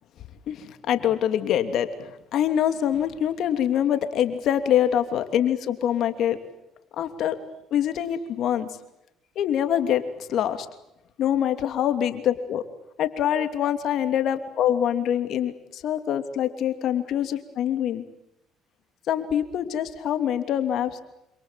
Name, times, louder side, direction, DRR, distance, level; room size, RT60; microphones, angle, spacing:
voice 1, 0.5-6.4 7.0-7.4 7.7-8.7 9.4-10.0 10.3-10.7 11.2-12.6 13.0-18.0 19.1-21.0, left 10 dB, 65° left, 9 dB, 2.9 m, -24 dB
28.0 x 27.0 x 7.6 m, 0.86 s
supercardioid pair, 70°, 0 cm